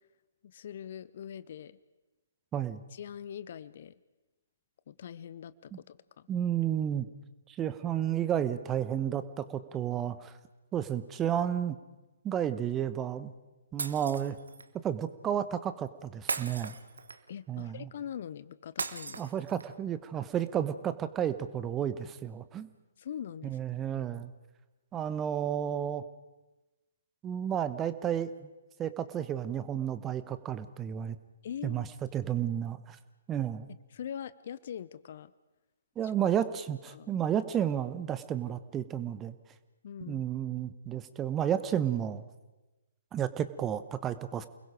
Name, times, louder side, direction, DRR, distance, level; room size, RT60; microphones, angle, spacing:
voice 1, 0.4-1.8 2.9-3.9 4.9-6.3 17.3-19.3 23.0-23.6 31.4-31.8 33.9-35.3 36.0-36.2 36.9-37.1 39.8-40.2, left 9 dB, 50° left, 17 dB, 0.7 m, -42 dB
voice 2, 2.5-2.8 5.7-5.8 6.3-7.1 7.5-10.3 10.7-11.8 12.2-13.3 13.7-14.4 14.8-16.7 17.5-17.9 19.2-22.7 23.4-24.3 24.9-26.0 27.2-28.5 28.8-31.2 31.6-31.9 32.1-33.0 33.3-33.7 36.0-39.3 40.0-42.2 43.1-44.5, right 9 dB, 15° right, 13 dB, 1.1 m, -32 dB
Shatter, 13.8-14.7 16.3-17.4 18.8-19.8, right 4 dB, 65° right, 1.4 m, -37 dB
29.0 x 21.0 x 5.1 m, 1.1 s
figure-of-eight pair, 125°, 0 cm